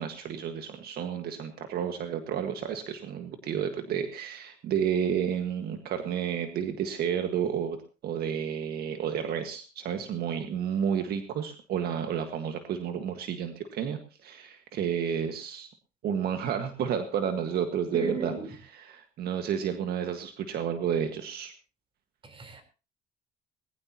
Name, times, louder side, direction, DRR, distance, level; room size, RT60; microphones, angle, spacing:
voice 1, 0.0-7.8 8.0-15.7 16.0-21.5, right 8 dB, 70° right, 7 dB, 1.7 m, -31 dB
voice 2, 17.9-18.5 22.2-22.6, right 4 dB, 30° right, 7 dB, 4.0 m, -34 dB
20.0 x 15.5 x 3.0 m, 0.32 s
cardioid pair, 110°, 17 cm